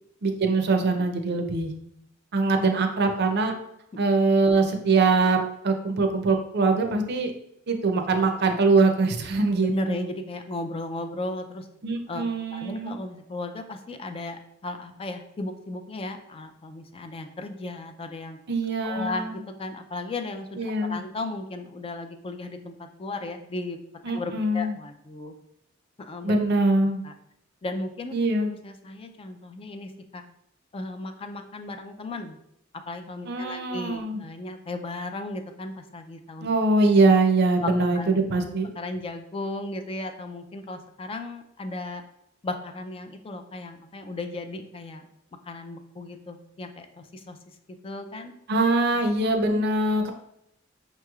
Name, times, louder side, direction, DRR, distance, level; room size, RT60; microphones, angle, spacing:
voice 1, 0.2-1.7 2.3-3.5 4.0-7.3 7.7-10.0 11.8-13.0 18.5-19.4 20.6-21.0 24.0-24.8 26.2-27.0 28.1-28.5 33.3-34.2 36.4-38.7 48.5-50.1, right 3 dB, 55° right, 5 dB, 0.5 m, -23 dB
voice 2, 9.7-11.7 12.1-12.3 12.5-18.4 18.8-23.8 24.1-25.3 26.0-26.3 27.0-27.1 27.6-28.1 28.4-30.2 30.7-32.4 32.9-36.5 37.6-38.1 38.8-42.0 42.4-45.1 45.5-47.4 47.7-48.3 49.1-49.7, left 2 dB, 30° left, 6 dB, 0.3 m, -35 dB
5.5 x 3.0 x 2.3 m, 0.77 s
head